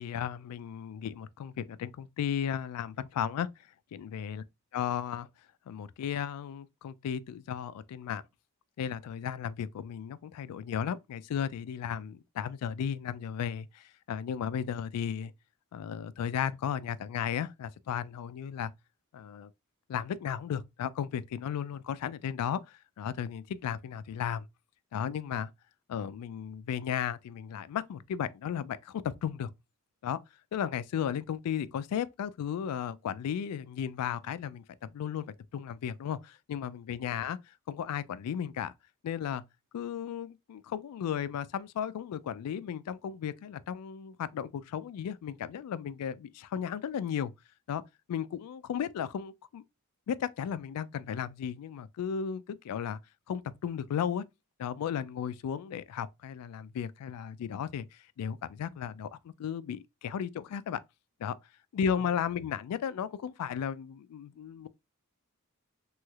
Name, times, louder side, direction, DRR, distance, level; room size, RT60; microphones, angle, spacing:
voice 1, 0.0-3.5 3.9-4.4 4.7-5.3 5.7-8.2 8.8-15.3 15.7-18.7 19.1-19.5 19.9-24.4 24.9-25.5 25.9-29.5 30.0-30.2 30.5-35.3 35.5-37.4 37.7-38.7 39.0-39.4 39.7-47.3 47.7-47.8 48.1-49.6 50.1-53.0 53.3-54.2 54.6-57.9 58.2-60.8 61.2-61.3 61.7-64.7, left 8 dB, 85° left, 0.3 m, -35 dB
3.1 x 3.0 x 2.3 m
head